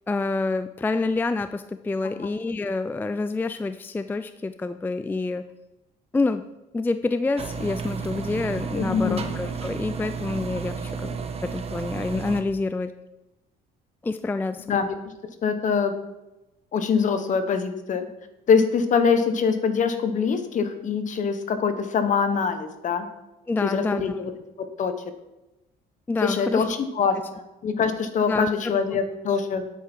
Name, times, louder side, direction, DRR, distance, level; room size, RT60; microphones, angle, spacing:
voice 1, 0.1-5.4 6.1-6.4 6.7-12.9 14.0-14.7 23.5-24.2 26.1-26.7 28.3-28.8, left 3 dB, 10° left, 11 dB, 0.4 m, -27 dB
sound 1, 7.4-12.4, right 6 dB, 35° right, 1.1 m, -32 dB
voice 2, 8.7-9.3 14.7-14.9 15.4-15.9 16.7-18.1 18.5-23.1 23.6-24.2 24.6-24.9 26.2-29.7, left 6 dB, 50° left, 9 dB, 1.3 m, -24 dB
10.0 x 8.7 x 4.6 m, 0.98 s
cardioid pair, 110°, 17 cm